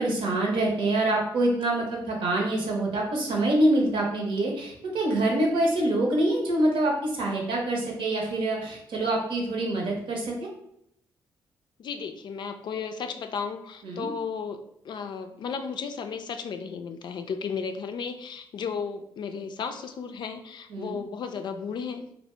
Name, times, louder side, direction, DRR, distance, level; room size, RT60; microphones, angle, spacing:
voice 1, 0.0-10.5 13.8-14.1 20.7-21.0, right 1 dB, 65° right, 0 dB, 0.9 m, -25 dB
voice 2, 11.8-22.1, left 6 dB, 55° left, 7 dB, 0.4 m, -34 dB
2.8 x 2.0 x 3.3 m, 0.76 s
hypercardioid pair, 50°, 9 cm